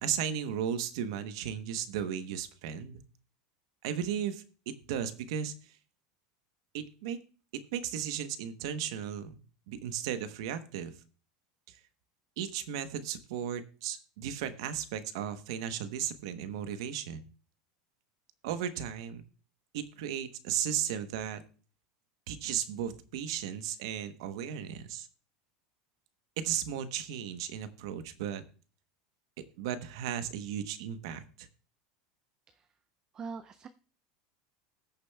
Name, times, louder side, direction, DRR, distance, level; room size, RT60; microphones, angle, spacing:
voice 1, 0.0-3.0 3.8-5.8 6.7-7.2 7.7-9.4 9.7-10.9 11.7-11.8 12.4-17.2 18.4-19.2 19.7-21.4 22.3-25.1 26.4-28.4 29.6-31.5, right 9 dB, 80° right, 11 dB, 1.0 m, -35 dB
voice 2, 33.1-33.7, right 5 dB, 25° right, 11 dB, 0.4 m, -42 dB
20.0 x 6.7 x 2.3 m, 0.40 s
supercardioid pair, 140°, 3 cm